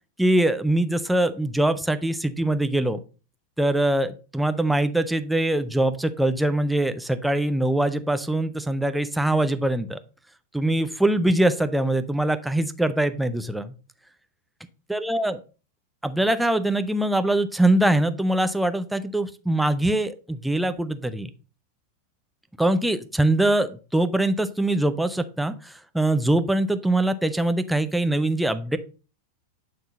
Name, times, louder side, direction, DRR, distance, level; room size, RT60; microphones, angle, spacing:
voice 1, 0.2-3.0 3.6-10.0 10.5-13.7 14.9-15.4 16.0-21.3 22.6-28.8, right 1 dB, 5° right, 10 dB, 0.6 m, -23 dB
9.1 x 3.8 x 4.0 m, 0.35 s
figure-of-eight pair, 90°, 0 cm